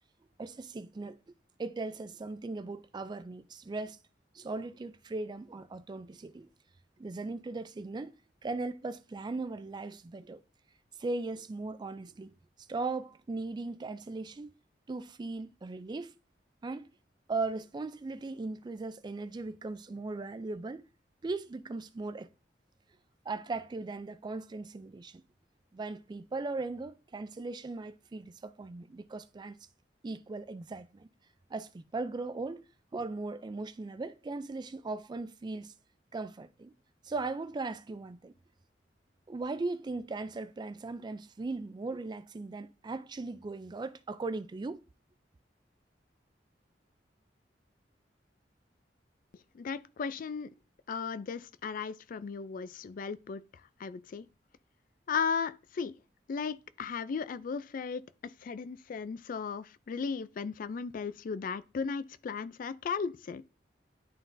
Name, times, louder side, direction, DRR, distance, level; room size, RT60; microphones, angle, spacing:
voice 1, 0.4-1.2 1.6-4.0 4.3-6.5 7.0-8.2 8.4-10.4 11.0-12.3 12.7-14.5 14.9-16.1 16.6-16.9 17.3-20.9 21.2-22.3 23.3-25.2 25.7-29.6 30.0-31.1 31.5-35.7 36.1-36.7 37.0-38.3 39.3-44.8, right 3 dB, 25° right, 0.3 m, -38 dB
voice 2, 49.5-50.5 50.9-53.4 53.8-54.3 55.1-55.9 56.3-58.0 58.4-63.4, left 5 dB, 50° left, 0.3 m, -36 dB
11.0 x 3.8 x 2.6 m
head